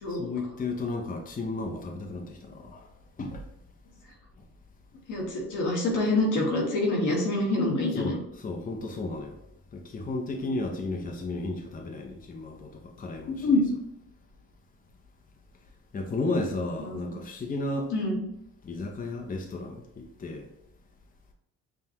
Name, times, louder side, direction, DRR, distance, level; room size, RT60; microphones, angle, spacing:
voice 1, 0.1-2.8 3.2-3.4 8.0-9.4 9.7-13.5 15.9-17.9 18.6-19.8 20.2-20.5, left 2 dB, 30° left, 0.7 m, -33 dB
voice 2, 5.1-8.2 10.4-10.6 13.3-13.6 16.8-17.1 17.9-18.2, left 2 dB, 80° left, 1.3 m, -26 dB
5.6 x 2.2 x 2.9 m
cardioid pair, 90°, 30 cm